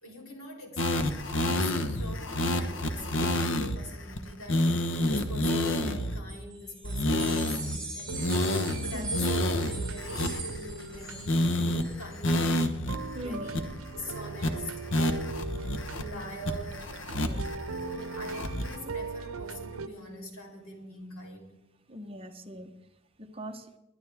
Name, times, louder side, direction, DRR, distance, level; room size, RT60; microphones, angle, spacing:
voice 1, 0.0-12.8 13.2-13.6 13.9-14.7 15.5-16.9 17.8-21.5, equal, 85° left, 0 dB, 3.5 m, -43 dB
sound 1, 0.8-3.8 4.2-4.3 4.5-6.2 6.8-7.8 8.1-11.0 11.3-11.8 12.2-13.0 13.2-13.3 13.5-14.0 14.4-14.5 14.9-16.0 16.5-17.6 17.9-18.8, left 1 dB, 65° left, 1.1 m, -28 dB
sound 2, 6.2-12.5, right 3 dB, 5° left, 3.2 m, -42 dB
sound 3, 8.0-19.9, right 3 dB, 85° right, 0.7 m, -40 dB
voice 2, 8.9-9.3 13.1-13.6 17.1-17.5 21.9-22.7 23.2-23.7, equal, 25° right, 6 dB, 0.9 m, -40 dB
21.5 x 10.5 x 3.5 m, 0.94 s
head